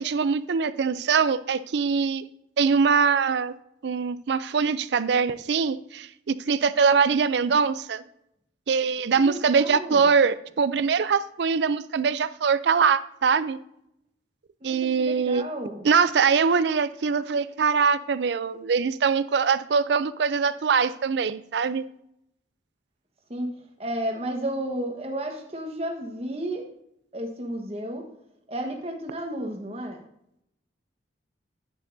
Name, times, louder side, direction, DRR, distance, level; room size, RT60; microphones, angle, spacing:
voice 1, 0.0-2.2 2.6-3.5 3.8-8.0 8.7-13.6 14.6-15.4 15.8-21.8, right 5 dB, 65° right, 15 dB, 0.4 m, -23 dB
voice 2, 9.2-10.1 14.6-15.9 23.3-26.7 27.1-28.1 28.5-30.0, right 1 dB, 35° right, 3 dB, 1.2 m, -32 dB
9.7 x 9.0 x 2.6 m, 0.79 s
head